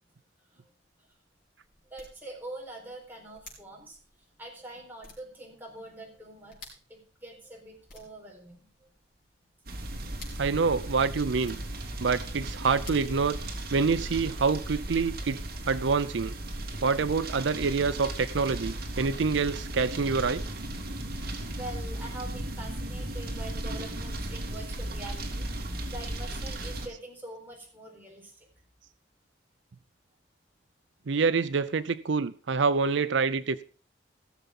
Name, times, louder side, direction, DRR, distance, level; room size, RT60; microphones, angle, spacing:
sound 1, 0.8-13.9, left 3 dB, 50° left, 5.1 m, -56 dB
voice 1, 1.9-4.0 4.4-8.9 16.7-16.8 21.5-28.5, right 1 dB, 10° right, 4.3 m, -44 dB
sound 2, 9.6-26.9, right 1 dB, 50° right, 2.4 m, -36 dB
voice 2, 10.4-11.6 12.0-13.4 13.7-16.3 16.8-20.4 31.1-33.6, right 5 dB, 65° right, 0.5 m, -26 dB
17.0 x 7.1 x 5.3 m
head